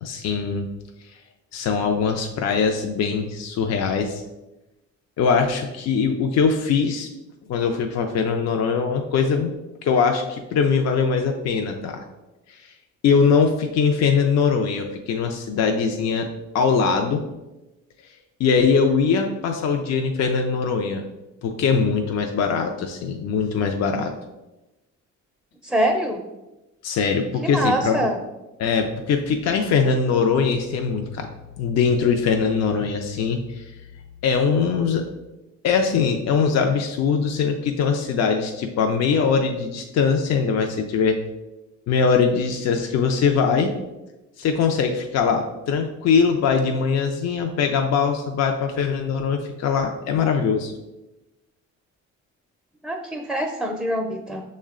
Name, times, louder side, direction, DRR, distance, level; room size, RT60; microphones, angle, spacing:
voice 1, 0.0-0.7 1.5-4.2 5.2-7.1 7.5-9.5 9.8-12.0 12.5-12.7 13.0-16.3 16.5-17.2 18.4-21.0 21.4-24.1 26.8-28.1 28.6-31.3 31.6-33.7 34.2-35.1 35.6-41.2 41.9-43.7 44.4-50.7, left 5 dB, 60° left, 4 dB, 0.5 m, -21 dB
voice 2, 25.6-26.2 27.4-28.2 52.8-54.4, right 1 dB, ahead, 1 dB, 0.4 m, -24 dB
6.2 x 2.2 x 3.6 m, 1.0 s
cardioid pair, 90°, 30 cm